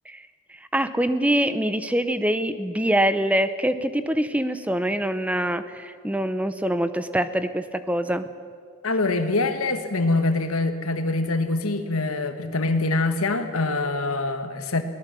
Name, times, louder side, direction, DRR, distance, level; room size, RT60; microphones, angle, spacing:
voice 1, 0.7-8.3, right 1 dB, 5° right, 11 dB, 0.7 m, -24 dB
voice 2, 8.8-14.8, left 2 dB, 80° left, 8 dB, 1.7 m, -24 dB
22.0 x 18.5 x 6.9 m, 2.1 s
head